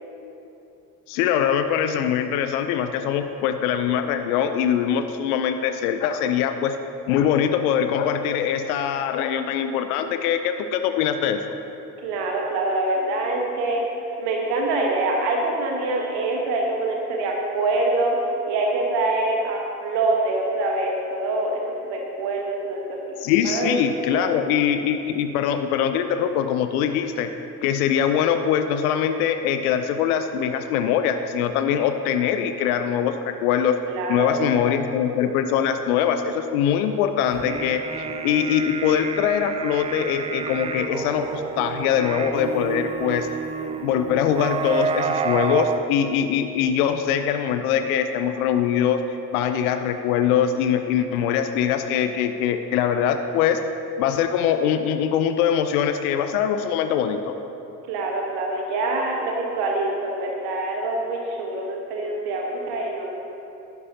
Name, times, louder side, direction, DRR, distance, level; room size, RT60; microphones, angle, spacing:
voice 1, 1.1-6.8 7.1-11.4 23.2-27.3 27.6-33.8 34.1-43.3 43.8-49.0 49.3-53.6 54.0-57.4, left 8 dB, 75° left, 8 dB, 0.6 m, -22 dB
voice 2, 12.0-13.8 14.2-18.2 18.5-23.8 24.1-24.3 33.9-34.8 57.9-63.1, right 2 dB, 65° right, 0 dB, 1.3 m, -25 dB
sound 1, 37.3-45.8, right 5 dB, 15° right, 0.3 m, -29 dB
11.5 x 9.4 x 2.8 m, 2.9 s
figure-of-eight pair, 50°, 45 cm